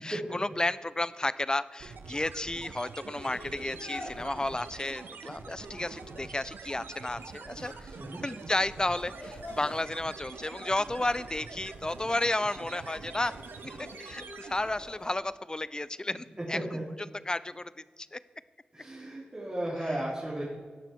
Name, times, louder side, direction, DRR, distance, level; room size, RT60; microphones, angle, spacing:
voice 1, 0.0-8.0 8.2-13.3 13.6-16.6 17.2-17.7 18.0-18.2 19.9-20.0, left 2 dB, 20° left, 17 dB, 0.5 m, -32 dB
sound 1, 1.8-15.0, right 5 dB, 85° right, 0.7 m, -45 dB
sound 2, 3.2-15.1, left 1 dB, 70° left, 3.8 m, -48 dB
voice 2, 18.7-20.4, right 1 dB, 30° right, -6 dB, 3.3 m, -35 dB
17.5 x 6.0 x 4.6 m, 1.5 s
cardioid pair, 40°, 3 cm